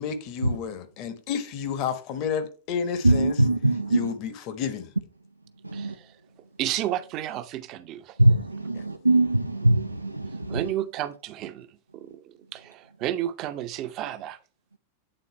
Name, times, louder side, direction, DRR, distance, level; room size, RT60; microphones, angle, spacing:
voice 1, 0.0-3.5 3.9-4.9 8.7-8.8, left 7 dB, 40° left, 1.1 m, -31 dB
voice 2, 3.0-4.1 5.7-5.9 8.2-10.6, right 1 dB, 85° right, 0.4 m, -22 dB
voice 3, 5.7-6.2 6.6-8.2 10.5-14.4, right 12 dB, 40° right, 0.7 m, -32 dB
8.9 x 3.9 x 4.1 m
figure-of-eight pair, 90°, 0 cm